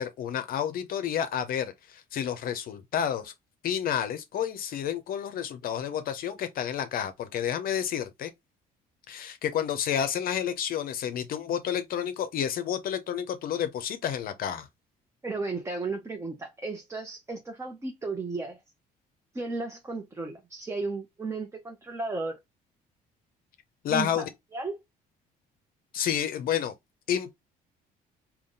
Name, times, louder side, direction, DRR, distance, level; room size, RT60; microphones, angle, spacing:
voice 1, 0.0-3.3 3.6-8.3 9.1-14.7 23.8-24.2 25.9-26.7 27.1-27.3, left 9 dB, 60° left, 0.6 m, -30 dB
voice 2, 15.2-18.6 19.3-22.4 23.9-24.3 24.5-24.8, right 3 dB, 15° right, 0.7 m, -34 dB
3.6 x 2.3 x 3.7 m
cardioid pair, 110°, 17 cm